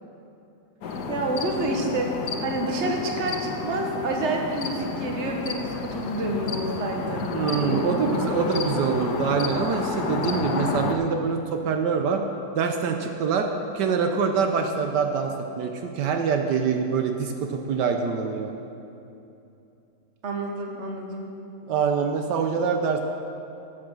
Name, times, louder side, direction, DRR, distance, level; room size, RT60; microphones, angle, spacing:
sound 1, 0.8-10.9, left 4 dB, 70° left, 1.5 m, -30 dB
voice 1, 1.1-7.2 7.6-8.3 20.2-21.3, right 2 dB, 45° right, 2 dB, 1.5 m, -29 dB
voice 2, 7.3-12.2 12.5-13.5 13.7-18.5 21.7-23.0, right 6 dB, 80° right, 4 dB, 1.4 m, -25 dB
13.5 x 7.6 x 6.3 m, 2.7 s
omnidirectional pair, 1.8 m